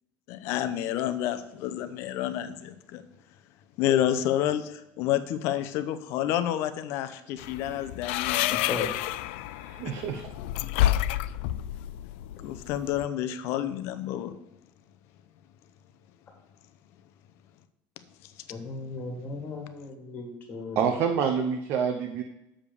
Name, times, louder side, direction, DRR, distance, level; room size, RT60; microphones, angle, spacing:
voice 1, 0.3-3.0 3.8-8.6 9.4-9.5 12.4-14.3 18.2-18.3, left 11 dB, 50° left, 11 dB, 0.7 m, -29 dB
sound 1, 7.4-13.1, left 13 dB, 80° left, 0.4 m, -30 dB
voice 2, 9.5-10.3 20.8-22.2, right 7 dB, 45° right, 5 dB, 0.7 m, -27 dB
voice 3, 18.5-20.8, left 3 dB, 25° left, 1 dB, 1.7 m, -36 dB
7.3 x 5.1 x 6.7 m, 0.85 s
cardioid pair, 180°, 6 cm